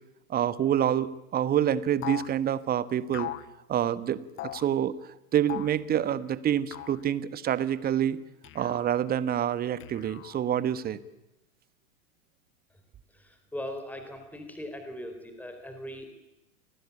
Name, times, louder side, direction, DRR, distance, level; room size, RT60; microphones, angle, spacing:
voice 1, 0.3-3.3 3.7-4.2 4.5-8.2 8.5-11.0, right 10 dB, 20° right, 16 dB, 1.3 m, -27 dB
sound 1, 2.0-2.3 3.1-3.5 4.4-4.7 5.5-5.8 6.7-7.0 8.4-8.9 9.8-10.5, left 14 dB, 30° left, 1.2 m, -39 dB
voice 2, 13.2-16.1, left 1 dB, 5° left, 7 dB, 4.3 m, -39 dB
29.0 x 19.5 x 8.6 m, 0.96 s
figure-of-eight pair, 100°, 42 cm